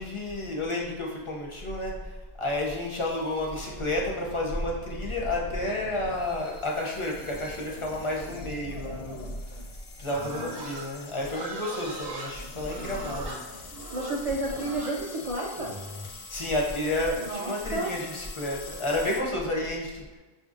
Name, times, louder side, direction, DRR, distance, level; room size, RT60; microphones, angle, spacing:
voice 1, 0.0-9.3 10.0-13.4 16.3-20.0, left 1 dB, 40° left, -2 dB, 0.5 m, -31 dB
sound 1, 2.7-19.2, left 2 dB, 80° left, 0.8 m, -44 dB
Livestock farm animals working animals, 10.0-16.1, right 2 dB, 65° right, 0.8 m, -39 dB
voice 2, 13.9-15.7 17.2-17.9, right 2 dB, 50° right, -4 dB, 0.4 m, -31 dB
5.4 x 2.6 x 2.4 m, 1.2 s
omnidirectional pair, 1.0 m